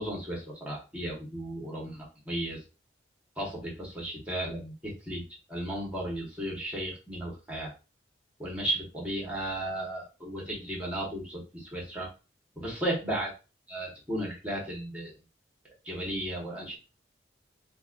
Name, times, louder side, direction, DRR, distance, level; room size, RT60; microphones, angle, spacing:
voice 1, 0.0-2.6 3.4-5.2 5.5-7.7 8.4-12.1 12.6-13.3 13.7-15.1 15.8-16.8, right 1 dB, 5° right, -3 dB, 1.3 m, -34 dB
5.2 x 2.3 x 2.5 m, 0.31 s
head